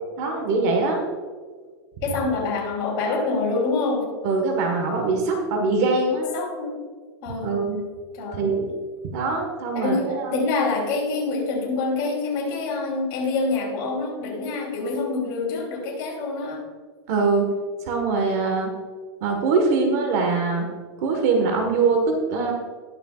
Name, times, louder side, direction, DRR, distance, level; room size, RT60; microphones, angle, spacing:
voice 1, 0.2-1.0 1.5-1.6 4.2-6.3 7.4-7.8 8.3-8.7 9.0-10.5 17.1-17.5 17.8-18.7 19.2-20.6 21.0-22.5, right 4 dB, 35° right, 3 dB, 1.5 m, -23 dB
voice 2, 2.0-4.1 6.3-6.8 7.2-7.6 8.1-8.4 9.7-16.7, left 3 dB, 35° left, -2 dB, 3.2 m, -26 dB
20.0 x 6.8 x 2.4 m, 1.5 s
supercardioid pair, 175°, 14 cm